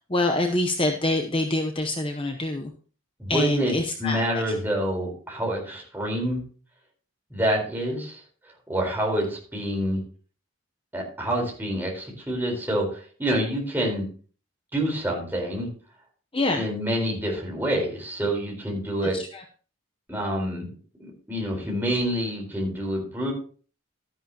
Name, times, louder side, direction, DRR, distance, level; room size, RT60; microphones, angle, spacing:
voice 1, 0.1-2.7 3.3-4.5 16.3-16.6 19.0-19.4, left 2 dB, 25° left, 5 dB, 0.8 m, -26 dB
voice 2, 3.2-3.7 4.0-6.4 7.3-8.2 8.7-10.0 10.9-14.0 14.7-15.7 16.5-19.2 20.1-20.7 21.0-23.3, right 1 dB, 10° right, -1 dB, 4.1 m, -27 dB
13.0 x 10.5 x 2.9 m, 0.41 s
head